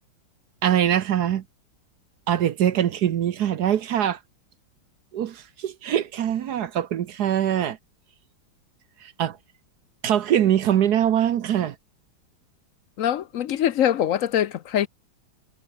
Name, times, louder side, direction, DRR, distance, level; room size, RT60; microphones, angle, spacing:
voice 1, 0.6-1.4 2.3-4.2 5.1-7.8 9.0-9.4 10.0-11.8, right 10 dB, 60° right, 1.2 m, -23 dB
voice 2, 13.0-14.9, left 10 dB, 70° left, 0.7 m, -23 dB
omnidirectional pair, 2.2 m